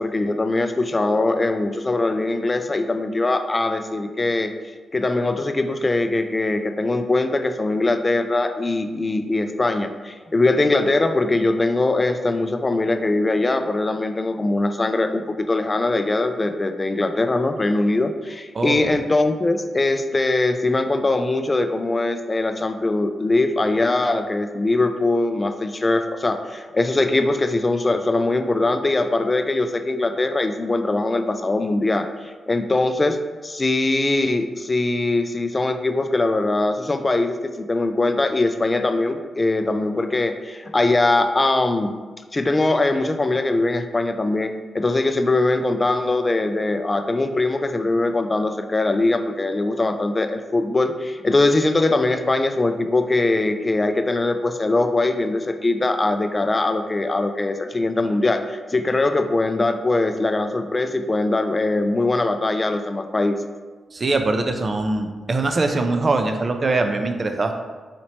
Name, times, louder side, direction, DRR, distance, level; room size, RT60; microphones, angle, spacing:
voice 1, 0.0-4.5 4.9-42.0 42.3-63.4, left 2 dB, 30° left, 8 dB, 0.3 m, -21 dB
voice 2, 18.5-19.0 63.9-67.5, right 3 dB, 45° right, 6 dB, 0.4 m, -22 dB
4.2 x 2.9 x 2.8 m, 1.4 s
supercardioid pair, 50°, 0 cm